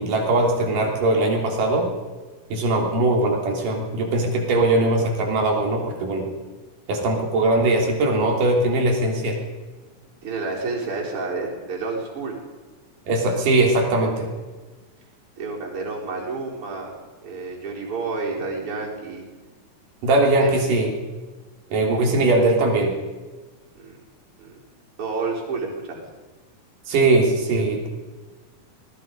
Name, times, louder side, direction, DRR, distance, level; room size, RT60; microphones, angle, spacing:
voice 1, 0.0-1.9 2.5-6.3 6.9-9.4 13.1-14.3 20.0-20.9 21.7-23.0 26.9-27.9, right 2 dB, 90° right, 1 dB, 4.9 m, -20 dB
voice 2, 10.2-12.4 15.4-16.9 17.2-19.2 20.2-20.7 23.8-24.0 24.4-24.6 25.0-26.0, right 3 dB, 45° right, -3 dB, 5.3 m, -30 dB
25.0 x 20.0 x 5.4 m, 1.3 s
omnidirectional pair, 3.6 m